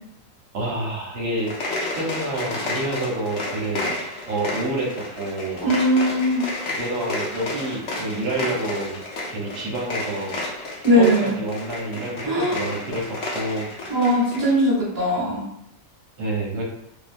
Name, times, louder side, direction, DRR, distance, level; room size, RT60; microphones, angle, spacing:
voice 1, 0.5-1.5 1.8-3.8 4.3-5.7 6.8-9.0 9.3-10.3 10.9-13.7 16.2-16.6, right 2 dB, 65° right, -3 dB, 1.2 m, -28 dB
sound 1, 1.3-14.6, left 2 dB, 65° left, 0.7 m, -31 dB
voice 2, 5.6-6.4 10.8-11.3 12.2-12.6 13.9-15.5, equal, 20° right, -9 dB, 0.6 m, -19 dB
2.9 x 2.2 x 2.4 m, 0.76 s
omnidirectional pair, 1.9 m